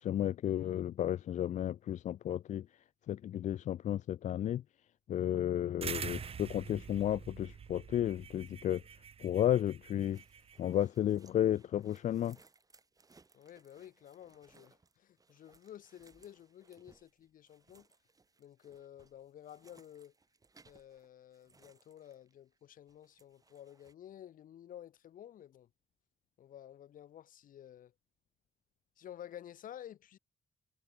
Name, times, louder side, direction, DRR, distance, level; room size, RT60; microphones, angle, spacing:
voice 1, 0.0-2.6 3.1-4.6 5.1-8.8 9.2-10.2 10.6-12.4, left 11 dB, 60° left, 0.4 m, -33 dB
sound 1, 5.8-10.7, right 7 dB, 45° right, 1.3 m, -45 dB
sound 2, 10.0-22.6 22.9-23.9, right 4 dB, 25° right, 5.0 m, -66 dB
voice 2, 13.3-17.9 18.4-20.1 20.7-25.7 26.4-27.9 29.0-30.2, left 11 dB, 80° left, 5.8 m, -52 dB
cardioid pair, 135°, 14 cm